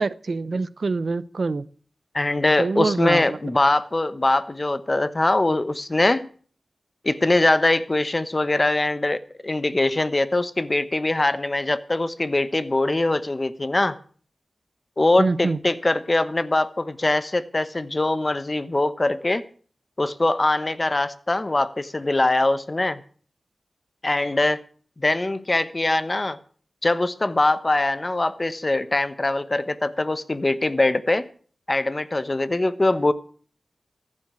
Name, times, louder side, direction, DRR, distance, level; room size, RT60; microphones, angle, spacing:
voice 1, 0.0-1.6 2.6-3.4 15.2-15.6, right 3 dB, 60° right, 0.7 m, -25 dB
voice 2, 2.1-6.3 7.0-14.0 15.0-19.4 20.0-23.0 24.0-24.6 25.0-26.4 26.8-31.3 31.7-33.1, left 2 dB, 30° left, 1.1 m, -22 dB
14.5 x 10.0 x 6.2 m
wide cardioid pair, 70°, 0 cm